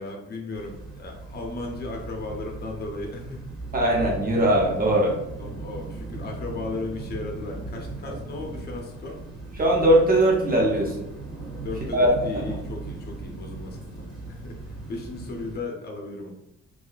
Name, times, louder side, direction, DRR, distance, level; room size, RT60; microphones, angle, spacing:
voice 1, 0.0-3.4 5.4-9.2 11.6-16.3, left 2 dB, 35° left, 1 dB, 0.6 m, -36 dB
sound 1, 0.5-15.6, right 3 dB, ahead, 1.4 m, -38 dB
voice 2, 3.7-5.2 9.6-10.9 11.9-12.5, right 1 dB, 30° right, -2 dB, 0.7 m, -20 dB
2.8 x 2.3 x 2.3 m, 0.84 s
cardioid pair, 90°, 30 cm